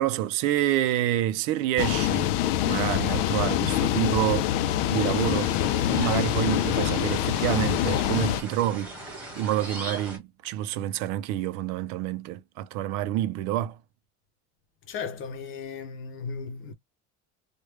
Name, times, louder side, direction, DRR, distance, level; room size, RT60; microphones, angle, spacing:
voice 1, 0.0-2.3 2.7-4.5 4.9-13.8, right 13 dB, 85° right, 0.6 m, -28 dB
sound 1, 1.8-8.4, left 12 dB, 90° left, 0.5 m, -25 dB
sound 2, 5.2-10.2, right 1 dB, 5° right, 1.4 m, -40 dB
voice 2, 14.9-16.7, left 5 dB, 40° left, 0.7 m, -36 dB
3.3 x 2.3 x 3.1 m
cardioid pair, 175°, 32 cm